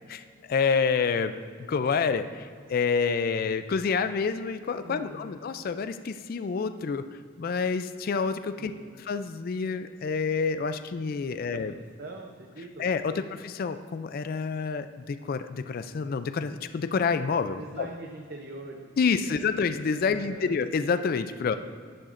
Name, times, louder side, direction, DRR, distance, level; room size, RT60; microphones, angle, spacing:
voice 1, 0.1-1.4 1.7-7.0 7.4-8.7 9.1-11.7 12.8-17.9 19.0-21.6, left 5 dB, 45° left, 10 dB, 0.3 m, -28 dB
voice 2, 4.8-5.4 8.6-8.9 11.5-11.7 12.0-13.2 17.6-18.9 19.2-19.6 20.0-20.5 21.4-21.6, right 2 dB, 50° right, 2 dB, 0.7 m, -42 dB
10.5 x 10.5 x 2.5 m, 2.1 s
head